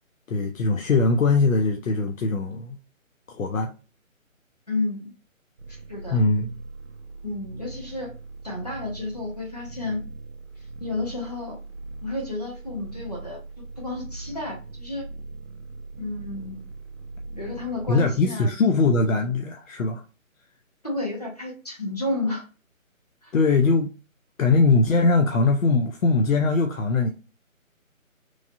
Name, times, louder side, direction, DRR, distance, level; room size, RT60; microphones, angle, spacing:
voice 1, 0.3-2.8 3.3-3.7 6.1-6.6 17.9-20.0 23.3-23.9 24.4-27.1, left 3 dB, 70° left, 0.6 m, -21 dB
voice 2, 4.7-5.1 5.7-6.2 7.2-8.1 8.4-10.0 10.8-11.6 12.0-13.4 13.8-15.0 16.0-16.6 17.3-18.5 20.8-22.5 23.2-23.3, left 2 dB, 30° left, 0.7 m, -31 dB
sound 1, 5.6-18.2, right 3 dB, 55° right, 0.5 m, -40 dB
3.1 x 2.6 x 2.4 m
hypercardioid pair, 175°, 42 cm